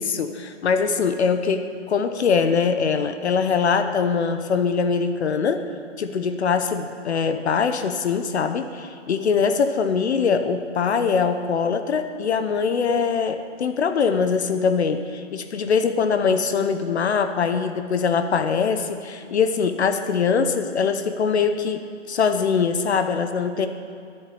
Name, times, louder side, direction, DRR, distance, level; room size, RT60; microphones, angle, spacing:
voice 1, 0.0-5.7 6.0-23.7, left 5 dB, 60° left, 9 dB, 0.9 m, -22 dB
10.5 x 8.2 x 8.6 m, 2.4 s
hypercardioid pair, 150°, 37 cm